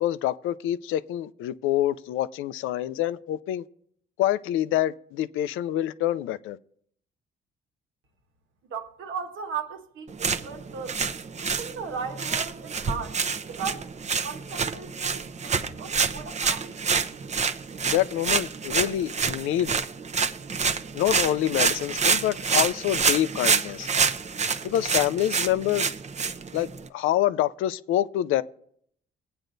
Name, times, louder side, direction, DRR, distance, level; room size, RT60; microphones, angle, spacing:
voice 1, 0.0-3.6 4.2-6.6 17.8-19.8 20.9-23.9 24.6-25.9 26.5-28.4, left 12 dB, 90° left, 0.5 m, -26 dB
voice 2, 8.7-11.0 11.4-13.2 13.5-13.9 14.2-16.8, right 6 dB, 80° right, 1.4 m, -36 dB
sound 1, 10.1-26.9, right 5 dB, 35° right, 0.7 m, -27 dB
19.5 x 8.8 x 2.6 m
cardioid pair, 90°, 20 cm